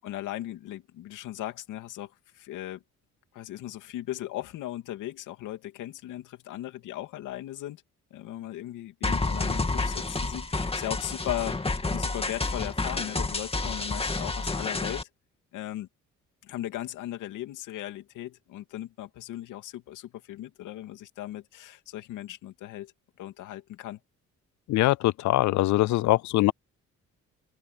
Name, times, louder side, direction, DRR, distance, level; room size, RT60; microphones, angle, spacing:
voice 1, 0.0-2.8 3.3-7.8 8.1-11.6 11.9-15.1 15.5-15.9 16.4-22.9 23.2-24.0, left 14 dB, 90° left, 2.7 m, -37 dB
sound 1, 9.0-15.0, left 3 dB, 20° left, 2.5 m, -29 dB
voice 2, 24.7-26.5, left 17 dB, 70° left, 0.5 m, -22 dB
cardioid pair, 90°, 30 cm